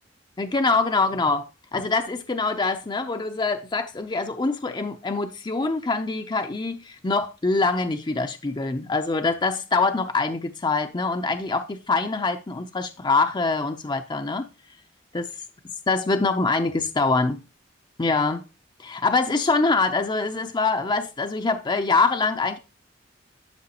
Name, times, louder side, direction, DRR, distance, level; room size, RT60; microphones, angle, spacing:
voice 1, 0.4-1.4 1.7-14.5 15.1-15.3 15.9-17.4 18.0-18.4 18.8-22.6, left 3 dB, 25° left, 0.5 m, -24 dB
11.5 x 5.9 x 2.9 m
head